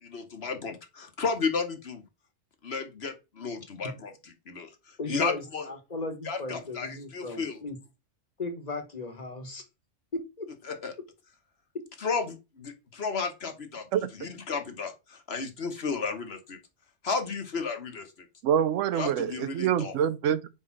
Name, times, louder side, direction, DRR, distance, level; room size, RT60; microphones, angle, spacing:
voice 1, 0.0-2.0 2.6-4.1 4.5-5.6 6.2-7.6 10.7-10.9 12.0-13.9 14.2-16.6 17.0-18.1 18.9-19.9, left 5 dB, 55° left, 1.3 m, -33 dB
voice 2, 5.0-7.8 8.4-9.6 10.1-10.5, left 2 dB, 35° left, 1.3 m, -36 dB
voice 3, 18.4-20.5, right 9 dB, 80° right, 1.0 m, -26 dB
4.6 x 4.6 x 5.8 m
omnidirectional pair, 1.3 m